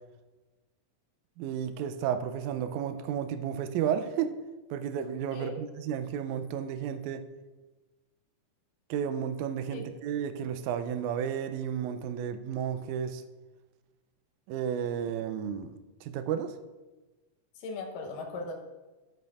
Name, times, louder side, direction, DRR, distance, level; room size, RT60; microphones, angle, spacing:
voice 1, 1.4-4.4 4.7-7.2 8.9-13.2 14.5-16.6, right 8 dB, 80° right, 1.8 m, -32 dB
voice 2, 17.6-18.5, left 3 dB, 85° left, 2.6 m, -38 dB
11.5 x 7.8 x 2.4 m
omnidirectional pair, 3.7 m